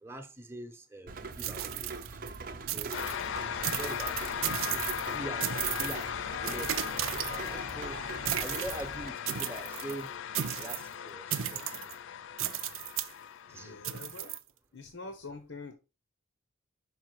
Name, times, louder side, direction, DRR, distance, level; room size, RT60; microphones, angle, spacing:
voice 1, 0.0-2.2 2.7-3.3 3.5-4.2 5.1-8.0 8.4-10.1 10.6-11.6 13.5-13.8, right 1 dB, 10° right, 0.9 m, -44 dB
Rain, 1.1-9.1, right 3 dB, 45° right, 0.6 m, -42 dB
sound 1, 1.3-2.4 2.7-3.2 3.6-5.1 5.4-6.0 6.5-7.7 8.3-8.8 9.3-9.9 10.3-10.9 11.3-11.9 12.4-13.1 13.8-14.4, right 11 dB, 85° right, 0.6 m, -35 dB
sound 2, 2.9-14.4, left 8 dB, 65° left, 0.3 m, -38 dB
voice 2, 13.5-14.3 14.7-15.7, left 3 dB, 80° left, 1.2 m, -45 dB
5.7 x 5.6 x 4.6 m
head